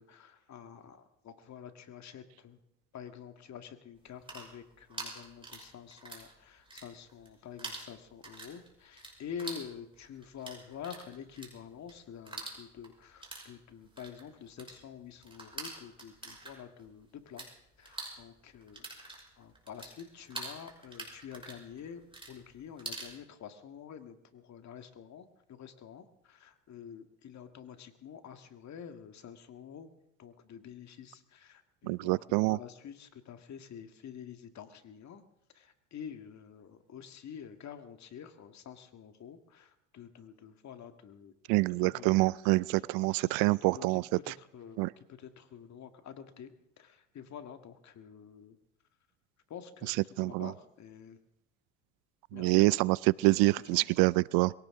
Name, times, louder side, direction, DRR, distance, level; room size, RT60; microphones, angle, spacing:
voice 1, 0.0-2.6 2.9-17.5 17.8-22.0 22.3-29.9 30.2-35.2 35.5-42.3 43.1-46.5 46.8-48.6 49.5-51.2 52.3-52.9 53.3-53.9, left 8 dB, 45° left, 7 dB, 2.0 m, -48 dB
sound 1, 4.0-6.3 6.6-7.3 7.6-17.5 17.8-23.1, right 2 dB, 15° right, 5.9 m, -45 dB
voice 2, 31.8-32.6 41.5-44.3 44.8-44.9 49.9-50.5 52.3-54.5, right 23 dB, 70° right, 23 dB, 0.5 m, -26 dB
22.5 x 17.0 x 3.8 m, 0.80 s
supercardioid pair, 80°, 37 cm